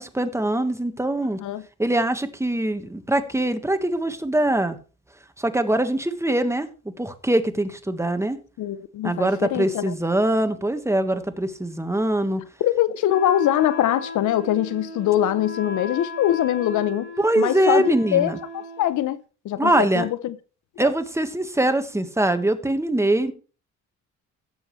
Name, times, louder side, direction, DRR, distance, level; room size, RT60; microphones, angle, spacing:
voice 1, 0.0-1.4 1.8-4.8 5.4-6.7 7.0-8.4 9.0-12.4 17.2-18.4 19.6-20.1 20.8-23.3, right 1 dB, 10° right, 1.4 m, -23 dB
voice 2, 8.6-9.9 12.6-17.1 17.4-20.3 20.8-20.9, left 12 dB, 75° left, 0.8 m, -23 dB
Wind instrument woodwind instrument, 13.1-19.0, left 2 dB, 40° left, 3.3 m, -36 dB
17.0 x 7.2 x 3.2 m
cardioid pair, 90°, 30 cm